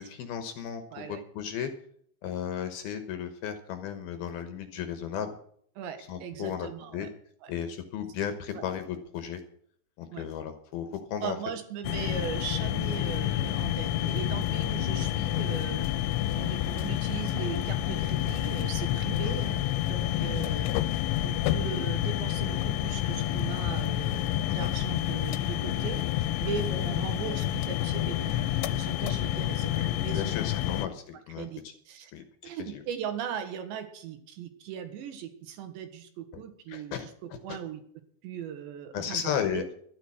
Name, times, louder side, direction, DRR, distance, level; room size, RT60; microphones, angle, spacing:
voice 1, 0.0-1.7 2.2-5.3 6.1-7.1 7.5-9.4 10.0-11.4 14.8-14.9 19.2-19.3 20.1-20.3 24.5-24.7 26.6-26.7 30.1-31.7 32.1-32.8 36.3-36.4 36.7-37.6 38.9-39.6, left 8 dB, 70° left, 8 dB, 2.6 m, -35 dB
voice 2, 0.9-1.2 5.8-7.1 7.4-7.5 8.5-8.6 10.1-10.2 11.2-15.9 16.3-20.7 21.2-26.0 26.4-31.0 31.4-31.6 31.9-32.1 32.4-37.8 38.2-39.2 39.5-39.7, right 8 dB, 75° right, 8 dB, 3.6 m, -38 dB
sound 1, 11.8-30.9, left 13 dB, 90° left, 3.2 m, -29 dB
12.5 x 11.5 x 6.3 m, 0.62 s
omnidirectional pair, 5.3 m